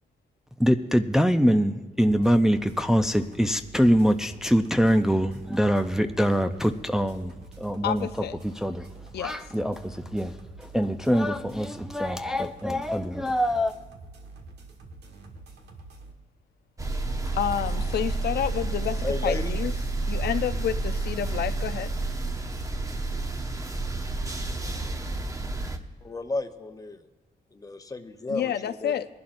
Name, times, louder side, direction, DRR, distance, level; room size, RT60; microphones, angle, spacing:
voice 1, 0.6-8.1 8.6-8.9 9.2-13.7, equal, 5° right, 0.5 m, -24 dB
sound 1, 2.0-16.1, right 3 dB, 85° right, 1.6 m, -47 dB
voice 2, 7.8-8.4 9.1-9.4 17.4-19.7 20.1-21.9 28.3-29.1, left 9 dB, 80° left, 0.6 m, -29 dB
sound 2, 16.8-25.8, right 3 dB, 20° right, 0.9 m, -30 dB
voice 3, 19.0-19.6 26.0-27.0 27.5-29.1, left 2 dB, 20° left, 0.9 m, -33 dB
22.0 x 11.5 x 2.6 m
cardioid pair, 120°, 17 cm